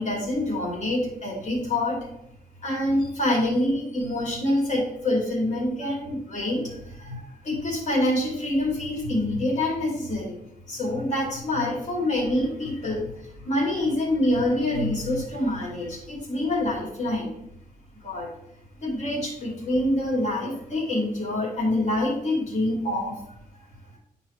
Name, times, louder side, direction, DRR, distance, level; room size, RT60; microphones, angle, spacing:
voice 1, 0.0-2.0 2.6-10.4 10.7-17.3 18.0-18.3 18.8-23.2 23.5-23.6, left 1 dB, 55° left, -3 dB, 2.4 m, -26 dB
11.0 x 4.0 x 3.1 m, 0.76 s
wide cardioid pair, 170°, 15 cm